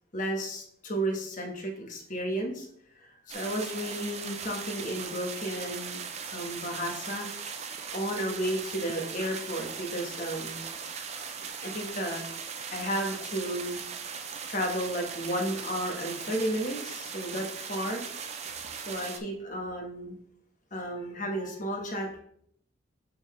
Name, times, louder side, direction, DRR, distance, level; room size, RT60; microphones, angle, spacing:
voice 1, 0.1-2.7 3.0-3.1 3.3-6.0 6.3-7.3 7.9-10.6 11.6-12.2 12.7-13.8 14.5-18.0 18.7-20.2 20.7-22.2, right 1 dB, 40° left, 2 dB, 1.2 m, -33 dB
sound 1, 3.3-19.2, right 6 dB, 30° right, 0.5 m, -39 dB
9.3 x 4.0 x 3.2 m, 0.67 s
head